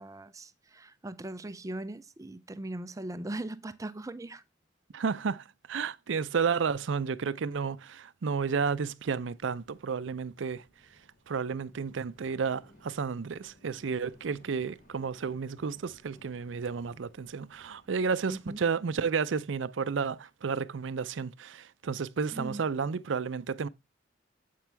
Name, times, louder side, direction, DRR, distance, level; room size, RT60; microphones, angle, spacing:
voice 1, 0.0-4.4 18.3-18.6 22.3-22.6, right 1 dB, 15° right, 0.4 m, -39 dB
voice 2, 4.9-10.6 11.3-23.7, right 5 dB, 80° right, 0.5 m, -32 dB
sound 1, 8.5-18.6, left 1 dB, 45° left, 3.0 m, -61 dB
8.3 x 6.0 x 3.4 m
head